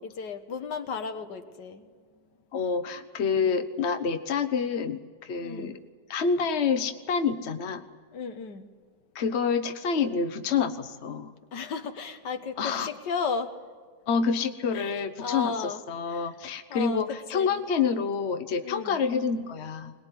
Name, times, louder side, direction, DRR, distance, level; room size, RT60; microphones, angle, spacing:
voice 1, 0.0-1.9 3.3-3.6 5.4-5.8 8.1-8.7 11.5-13.5 14.7-15.8 16.1-16.2 16.7-17.6 18.6-19.0, left 5 dB, 90° left, 7 dB, 2.0 m, -34 dB
voice 2, 2.5-5.8 6.1-7.9 9.1-11.3 12.6-12.9 14.1-19.9, left 5 dB, 45° left, 9 dB, 1.2 m, -28 dB
22.0 x 20.0 x 9.9 m, 1.5 s
omnidirectional pair, 1.8 m